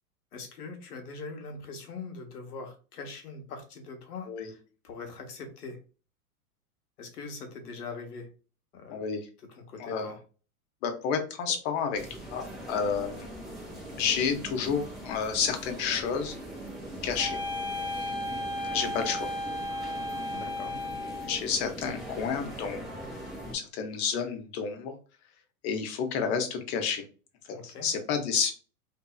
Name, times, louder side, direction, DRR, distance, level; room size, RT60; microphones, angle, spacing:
voice 1, 0.3-5.8 7.0-8.3 8.7-9.0 9.4-10.2 20.3-20.8 27.5-27.9, left 4 dB, 85° left, 5 dB, 1.0 m, -42 dB
voice 2, 8.9-9.2 9.8-10.1 10.8-12.0 12.3-13.3 14.0-16.4 17.0-17.4 18.7-19.3 21.3-22.9 23.5-24.9 25.6-27.0 27.6-28.5, left 6 dB, 45° left, 6 dB, 0.8 m, -30 dB
sound 1, 11.9-23.5, right 1 dB, ahead, 0.8 m, -41 dB
sound 2, 17.2-21.4, left 1 dB, 15° left, 0.3 m, -34 dB
2.7 x 2.7 x 2.3 m, 0.36 s
hypercardioid pair, 115°, 45 cm